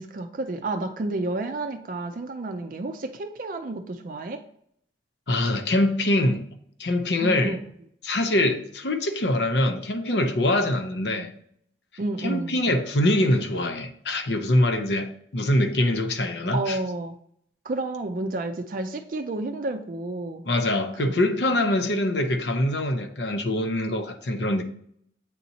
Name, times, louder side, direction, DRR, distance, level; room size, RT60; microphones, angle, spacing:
voice 1, 0.0-4.4 7.2-7.6 12.0-12.6 16.5-17.2 17.7-20.4 21.0-21.1, right 2 dB, 50° right, 0.4 m, -30 dB
voice 2, 5.3-6.4 6.8-7.6 8.0-11.3 12.2-16.8 20.4-24.6, left 1 dB, 70° left, 0.7 m, -24 dB
8.3 x 4.1 x 2.8 m
head